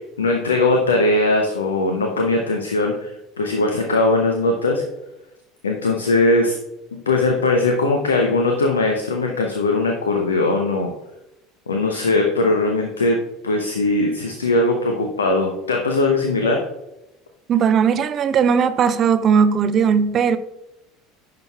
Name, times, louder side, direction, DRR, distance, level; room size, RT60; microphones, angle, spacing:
voice 1, 0.2-4.8 5.6-6.6 6.9-10.9 11.7-16.7, left 2 dB, 75° left, 0.6 m, -20 dB
voice 2, 17.5-20.4, right 7 dB, 40° right, 0.5 m, -18 dB
10.5 x 5.9 x 2.3 m
figure-of-eight pair, 70°, 0 cm